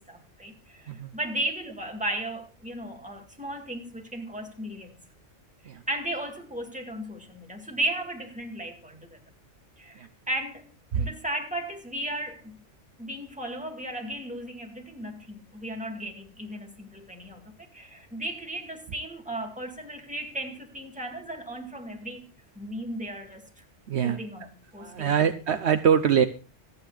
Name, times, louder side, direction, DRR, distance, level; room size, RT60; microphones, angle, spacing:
voice 1, 0.0-5.0 5.9-9.2 9.8-10.7 11.0-12.6 13.0-22.3 22.6-23.6 24.0-25.2, right 1 dB, 5° right, 2.2 m, -35 dB
voice 2, 23.9-24.5 24.8-26.3, right 8 dB, 65° right, 1.0 m, -24 dB
26.0 x 8.9 x 2.4 m
omnidirectional pair, 1.2 m